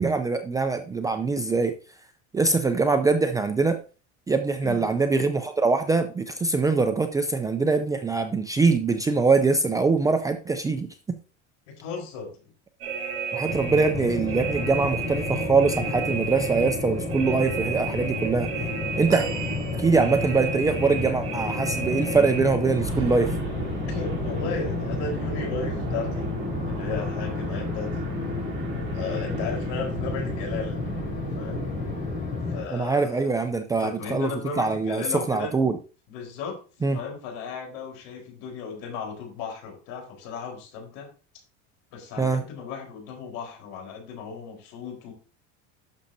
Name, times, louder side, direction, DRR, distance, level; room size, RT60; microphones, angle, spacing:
voice 1, 0.0-1.7 2.3-3.8 4.3-10.9 13.3-18.5 19.0-19.2 19.7-23.3 32.7-34.3 34.6-35.8 36.8-37.0 42.2-42.4, right 4 dB, 10° right, 7 dB, 0.4 m, -23 dB
voice 2, 11.7-12.5 23.9-26.3 26.6-28.1 28.9-30.8 31.3-31.7 32.5-33.3 33.8-35.5 36.1-41.1 41.9-45.1, left 5 dB, 60° left, 1 dB, 4.3 m, -35 dB
sound 1, 12.8-32.0, right 6 dB, 40° right, 3.5 m, -34 dB
sound 2, 13.4-32.6, left 4 dB, 25° left, 4.1 m, -31 dB
sound 3, 19.1-20.5 21.2-21.3, right 8 dB, 90° right, 1.7 m, -38 dB
11.5 x 6.4 x 2.7 m, 0.34 s
cardioid pair, 150°, 34 cm